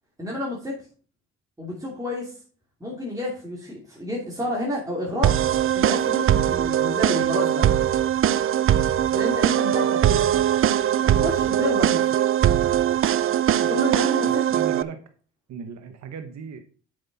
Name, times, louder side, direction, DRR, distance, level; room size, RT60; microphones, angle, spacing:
voice 1, 0.2-0.8 1.6-2.3 2.8-5.4 5.7-7.7 9.1-10.3 11.0-12.1 13.6-14.6, left 1 dB, 10° right, -4 dB, 2.8 m, -30 dB
sound 1, 5.2-14.8, right 10 dB, 45° right, 0.5 m, -21 dB
voice 2, 10.0-10.5 14.3-15.0 15.5-16.6, right 6 dB, 65° right, 7 dB, 1.1 m, -37 dB
8.1 x 6.4 x 4.1 m, 0.40 s
cardioid pair, 90°, 30 cm